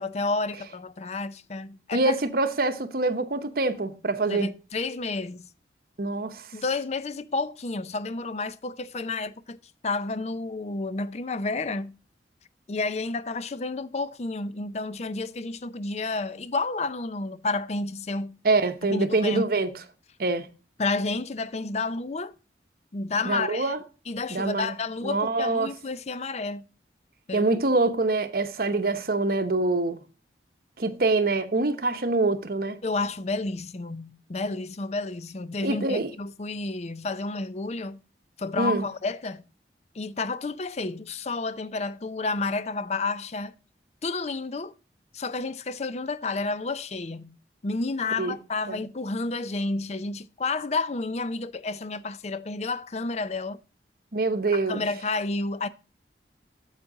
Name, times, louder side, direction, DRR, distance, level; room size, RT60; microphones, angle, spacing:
voice 1, 0.0-2.2 4.3-5.5 6.5-9.6 9.8-12.0 12.7-18.4 18.8-19.5 20.8-22.3 22.9-23.7 24.1-26.7 27.3-27.5 32.8-38.0 38.4-39.4 39.9-43.5 44.0-44.7 45.1-47.4 47.6-53.6 54.5-55.7, left 3 dB, 40° left, 0.5 m, -30 dB
voice 2, 1.9-4.5 6.0-6.4 18.4-19.7 20.2-20.5 23.2-23.8 24.3-24.7 25.0-25.7 27.3-30.0 30.8-32.8 35.6-36.1 38.6-38.8 48.2-48.4 48.7-48.8 54.1-54.8, right 3 dB, 55° right, 0.9 m, -25 dB
8.3 x 7.4 x 3.8 m
head